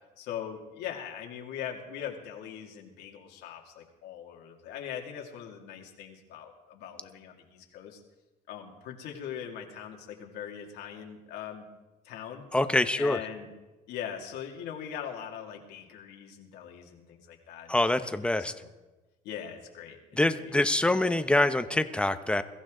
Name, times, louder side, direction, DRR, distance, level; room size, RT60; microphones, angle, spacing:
voice 1, 0.2-8.0 8.5-11.7 12.0-12.4 13.0-13.5 13.9-17.8 18.2-18.7 19.2-20.6, left 9 dB, 85° left, 1 dB, 2.5 m, -41 dB
voice 2, 12.5-13.2 17.7-18.5 20.2-22.4, left 1 dB, 5° left, 10 dB, 0.9 m, -25 dB
22.0 x 14.5 x 3.9 m, 1.1 s
cardioid pair, 110°, 17 cm